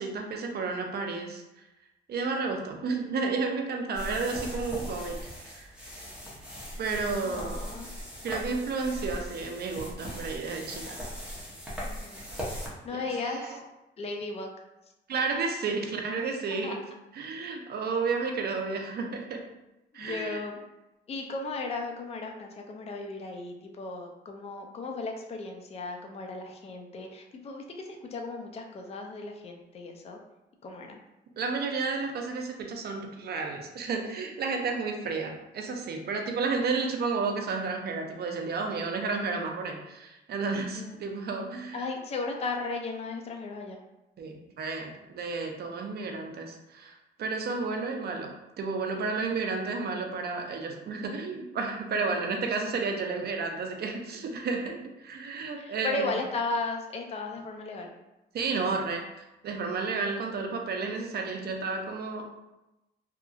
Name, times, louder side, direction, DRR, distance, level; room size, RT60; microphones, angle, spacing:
voice 1, 0.0-1.4 2.1-5.7 6.8-7.7 8.2-11.0 12.9-13.6 15.1-16.8 17.1-19.5 19.9-20.4 31.4-41.9 44.2-48.3 48.6-54.8 55.0-56.2 58.3-62.2, right 4 dB, 55° right, 3 dB, 0.5 m, -32 dB
sound 1, 3.9-12.7, equal, 5° right, 0.9 m, -39 dB
voice 2, 7.2-7.9 11.8-12.3 12.8-13.6 14.0-14.5 16.6-16.7 19.9-20.6 21.1-30.2 30.6-31.0 40.7-40.9 41.7-43.8 52.1-52.3 55.6-57.9, left 3 dB, 30° left, 2 dB, 0.4 m, -35 dB
2.8 x 2.4 x 2.4 m, 0.98 s
cardioid pair, 90°, 20 cm